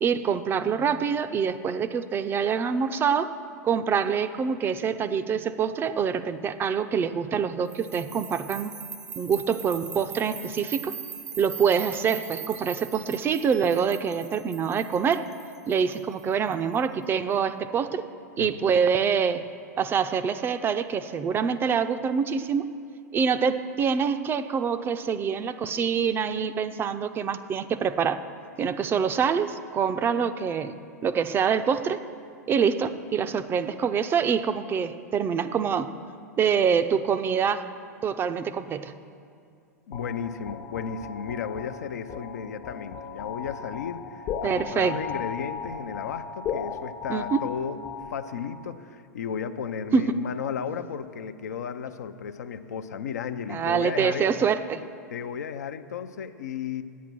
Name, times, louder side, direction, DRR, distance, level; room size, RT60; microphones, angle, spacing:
voice 1, 0.0-3.3 3.6-8.7 9.2-10.9 11.4-15.3 15.7-18.0 18.4-19.5 19.8-22.7 23.1-28.2 28.6-30.7 31.0-32.0 32.5-35.9 36.4-37.7 38.0-38.9 44.4-45.0 47.1-47.4 49.9-50.0 53.5-54.8, right 6 dB, 25° right, 11 dB, 0.4 m, -25 dB
sound 1, 7.7-16.8, right 7 dB, 70° right, 0.6 m, -41 dB
voice 2, 39.9-47.8 48.1-54.3 55.1-56.8, left 7 dB, 70° left, 9 dB, 0.5 m, -34 dB
sound 2, 39.9-48.6, left 7 dB, 45° left, 0.8 m, -36 dB
9.3 x 8.4 x 6.1 m, 2.4 s
hypercardioid pair, 95°, 9 cm